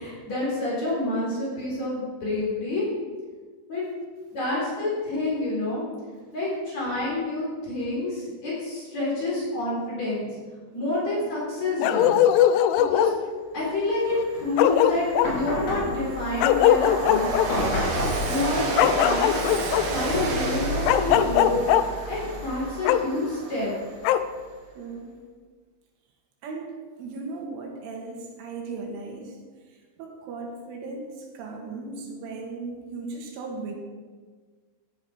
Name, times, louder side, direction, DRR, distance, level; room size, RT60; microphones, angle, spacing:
voice 1, 0.0-2.8 3.7-3.8 4.3-5.8 6.3-10.3 10.7-12.2 12.9-13.1 13.5-17.8 18.2-19.5 19.9-21.7 22.1-23.7, left 2 dB, 35° left, -5 dB, 4.8 m, -28 dB
Bark, 11.8-13.2 14.2-14.3 14.6-15.3 16.4-17.5 18.8-19.8 20.9-21.8 22.9-23.0 24.0-24.2, left 11 dB, 80° left, 3.0 m, -20 dB
Train, 13.5-13.6 14.0-24.4, right 3 dB, 50° right, 2.8 m, -32 dB
sound 1, 15.2-22.7, left 1 dB, 60° left, 7.0 m, -33 dB
voice 2, 24.8-25.2 26.4-29.4 29.7-33.8, right 3 dB, 80° right, 1 dB, 4.3 m, -37 dB
15.5 x 10.0 x 5.0 m, 1.5 s
omnidirectional pair, 5.6 m